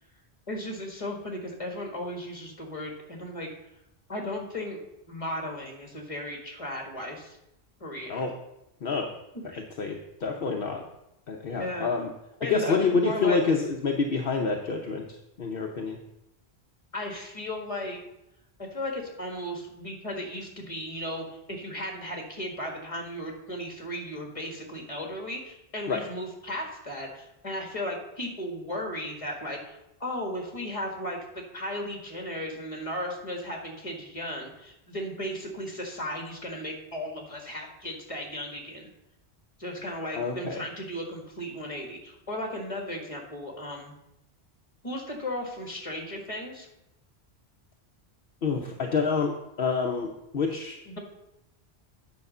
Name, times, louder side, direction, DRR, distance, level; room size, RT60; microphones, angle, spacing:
voice 1, 0.5-3.5 4.1-4.8 5.1-7.4 7.8-8.3 9.5-9.6 11.5-11.9 12.4-13.4 16.9-18.0 18.6-38.9 39.6-43.9 44.8-46.7 50.9-51.0, left 1 dB, 30° left, 2 dB, 1.9 m, -35 dB
voice 2, 9.8-10.8 11.3-12.1 12.5-15.0 15.4-16.0 25.9-26.0 40.2-40.6 48.4-49.3 49.6-50.8, left 4 dB, 60° left, 2 dB, 1.0 m, -27 dB
9.5 x 5.0 x 6.6 m, 0.89 s
omnidirectional pair, 1.1 m